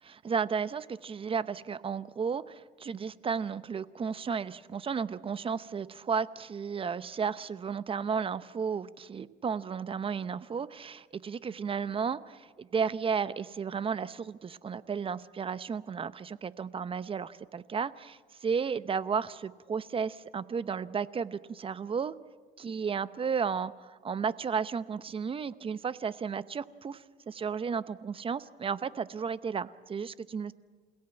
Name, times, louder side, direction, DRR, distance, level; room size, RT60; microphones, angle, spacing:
voice 1, 0.0-22.1 22.6-30.5, right 6 dB, 30° right, 15 dB, 0.8 m, -33 dB
28.0 x 17.0 x 9.0 m, 1.5 s
cardioid pair, 110°, 17 cm